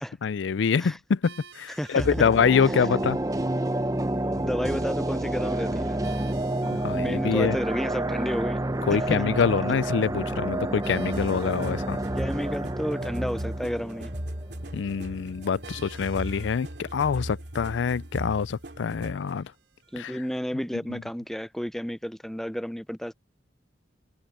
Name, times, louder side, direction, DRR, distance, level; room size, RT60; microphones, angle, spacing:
voice 1, 0.2-3.2 6.6-7.6 8.9-12.0 14.7-19.5 20.0-20.1 20.9-21.0, left 6 dB, 90° left, 0.4 m, -25 dB
sound 1, 1.2-20.4, right 6 dB, 80° right, 5.9 m, -55 dB
voice 2, 1.8-2.3 4.3-6.0 6.9-8.6 8.9-9.2 12.2-14.1 19.9-23.1, equal, ahead, 0.4 m, -31 dB
sound 2, 2.0-15.1 15.4-15.5, right 1 dB, 20° right, 0.8 m, -29 dB
sound 3, 11.1-19.3, equal, 65° right, 3.0 m, -38 dB
open air
head